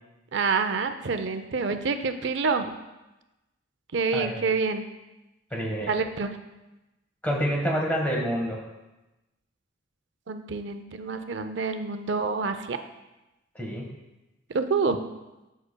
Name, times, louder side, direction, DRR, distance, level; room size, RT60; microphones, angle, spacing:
voice 1, 0.3-2.7 3.9-4.8 5.9-6.3 10.3-12.8 14.5-15.0, right 4 dB, 60° right, 8 dB, 0.5 m, -27 dB
voice 2, 5.5-5.9 7.2-8.7 13.5-13.9, equal, 10° left, -1 dB, 1.3 m, -27 dB
12.5 x 6.4 x 2.2 m, 1.0 s
head